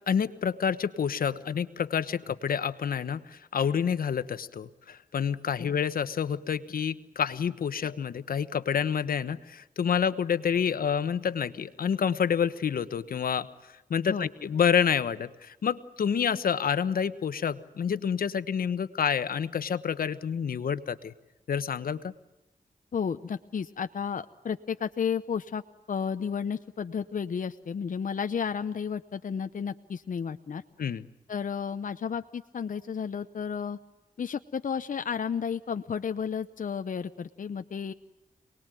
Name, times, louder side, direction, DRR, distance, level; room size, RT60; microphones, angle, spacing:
voice 1, 0.1-13.5 13.9-21.1 21.5-22.1 30.8-31.0, left 7 dB, 85° left, 13 dB, 1.2 m, -28 dB
voice 2, 22.9-25.6 25.9-30.6 31.3-33.8 34.2-37.9, left 7 dB, 65° left, 9 dB, 0.9 m, -32 dB
27.5 x 20.0 x 9.1 m, 1.0 s
cardioid pair, 65°, 15 cm